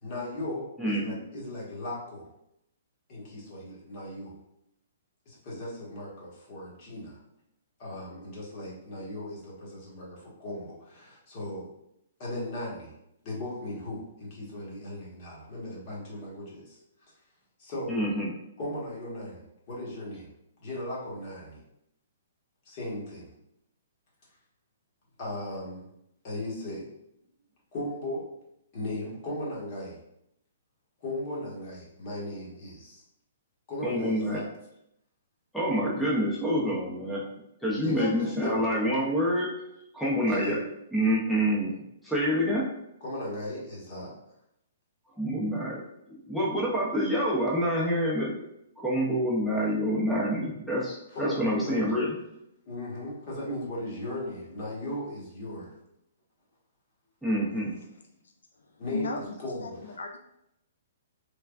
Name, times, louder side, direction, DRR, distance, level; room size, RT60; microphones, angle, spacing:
voice 1, 0.0-2.3 3.1-4.4 5.2-7.2 7.8-11.7 12.2-12.9 13.2-16.8 17.6-18.0 18.6-20.3 20.6-21.6 22.6-23.3 25.2-25.9 26.2-26.9 27.7-28.3 28.7-30.0 31.0-33.0 33.7-34.5 36.0-36.1 37.8-38.7 40.3-40.6 43.0-44.2 51.1-51.9 52.7-55.8 58.8-60.0, left 1 dB, 40° left, -5 dB, 1.2 m, -37 dB
voice 2, 0.8-1.2 17.9-18.3 33.8-34.4 35.5-37.3 37.6-39.6 39.9-40.6 40.9-41.8 42.0-42.7 45.2-45.8 46.2-48.4 48.8-52.1 57.2-57.8, equal, 5° left, -6 dB, 0.5 m, -27 dB
voice 3, 57.7-59.3 59.6-59.7 60.0-60.2, left 3 dB, 90° left, 4 dB, 0.3 m, -38 dB
3.3 x 2.2 x 2.4 m, 0.79 s
hypercardioid pair, 145°, 0 cm